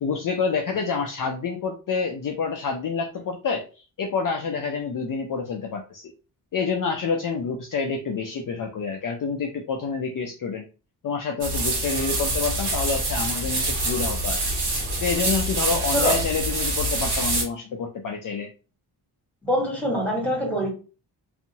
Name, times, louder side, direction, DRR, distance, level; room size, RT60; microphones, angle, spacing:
voice 1, 0.0-6.1 6.5-10.6 11.0-14.6 15.0-18.5, left 5 dB, 50° left, 2 dB, 0.5 m, -28 dB
sound 1, 11.4-17.4, right 2 dB, 60° right, 1.3 m, -25 dB
voice 2, 19.4-20.7, equal, 5° left, 0 dB, 1.5 m, -24 dB
2.7 x 2.4 x 2.8 m, 0.34 s
cardioid pair, 90°, 44 cm